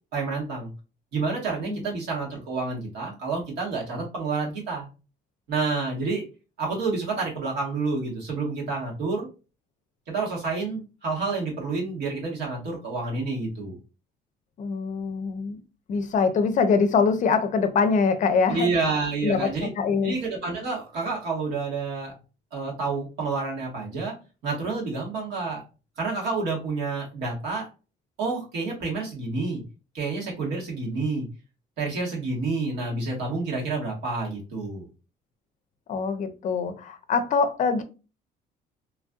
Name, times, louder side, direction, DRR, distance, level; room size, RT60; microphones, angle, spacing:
voice 1, 0.1-0.7 1.1-4.9 5.5-6.2 6.6-9.3 10.1-13.8 18.5-19.7 20.0-22.1 22.5-24.1 24.4-25.6 26.0-27.7 28.2-29.6 29.9-31.3 31.8-34.9, right 3 dB, 80° right, 1.5 m, -29 dB
voice 2, 14.6-15.6 15.9-18.7 19.2-19.5 19.8-20.2 35.9-37.8, left 5 dB, 50° left, 0.5 m, -23 dB
3.1 x 2.6 x 2.3 m
cardioid pair, 110°, 17 cm